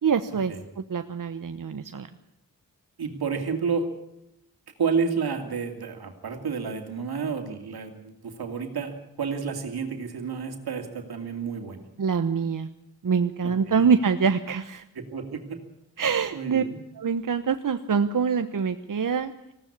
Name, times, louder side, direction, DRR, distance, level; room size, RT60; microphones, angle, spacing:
voice 1, 0.0-2.1 12.0-12.7 13.0-14.8 16.0-16.6 17.0-19.3, right 6 dB, 60° right, 8 dB, 1.0 m, -25 dB
voice 2, 3.0-3.9 4.8-11.8 13.4-13.9 14.9-15.6 16.0-16.7, right 5 dB, 80° right, 4 dB, 2.7 m, -30 dB
19.5 x 16.0 x 8.7 m, 0.83 s
cardioid pair, 45°, 37 cm